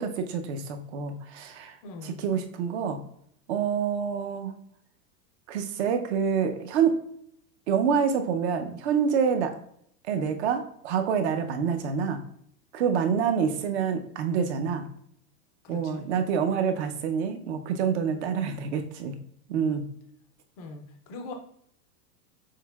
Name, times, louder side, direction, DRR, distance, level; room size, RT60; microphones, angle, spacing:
voice 1, 0.0-1.8 2.0-3.0 3.5-4.5 5.5-7.0 7.7-9.5 10.1-12.2 12.7-14.9 15.7-19.2 19.5-19.9, right 7 dB, 45° right, 7 dB, 0.6 m, -27 dB
voice 2, 1.8-2.2 15.6-16.1 20.6-21.3, left 3 dB, 25° left, 4 dB, 0.4 m, -41 dB
6.5 x 3.5 x 2.3 m, 0.68 s
supercardioid pair, 160°, 49 cm